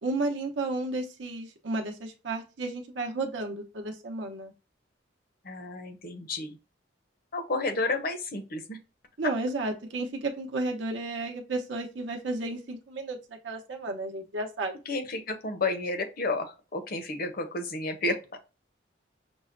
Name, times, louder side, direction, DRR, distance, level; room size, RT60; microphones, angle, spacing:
voice 1, 0.0-4.5 9.2-13.2 13.4-14.7, right 2 dB, 70° right, 2 dB, 0.7 m, -32 dB
voice 2, 5.4-6.6 7.3-8.8 14.9-18.4, left 2 dB, 50° left, 7 dB, 0.7 m, -31 dB
6.1 x 2.1 x 2.5 m, 0.30 s
head